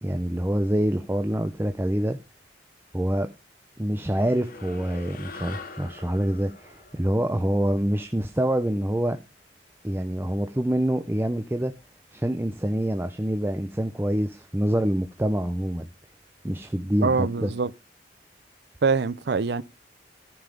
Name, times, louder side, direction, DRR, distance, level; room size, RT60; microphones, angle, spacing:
voice 1, 0.0-2.2 2.9-3.3 3.8-9.2 9.8-11.7 12.1-15.9 16.4-17.5, right 1 dB, 15° right, 0.7 m, -26 dB
sound 1, 4.0-8.7, left 4 dB, 55° left, 1.1 m, -44 dB
voice 2, 17.0-17.7 18.8-19.6, right 4 dB, 65° right, 0.6 m, -24 dB
14.0 x 5.6 x 5.2 m
head